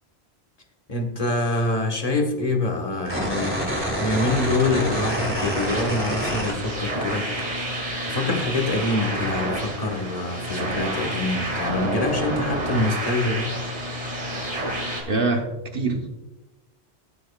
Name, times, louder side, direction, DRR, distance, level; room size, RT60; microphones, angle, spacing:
voice 1, 0.9-7.3 8.1-13.6, left 2 dB, 35° left, 2 dB, 1.4 m, -25 dB
sound 1, 3.0-7.1 7.4-8.4, equal, 10° right, 2.4 m, -27 dB
sound 2, 4.0-15.0, right 1 dB, 40° right, 2.3 m, -30 dB
voice 2, 15.1-16.2, right 3 dB, 60° right, 4 dB, 1.1 m, -25 dB
15.0 x 7.5 x 2.3 m, 1.1 s
omnidirectional pair, 1.1 m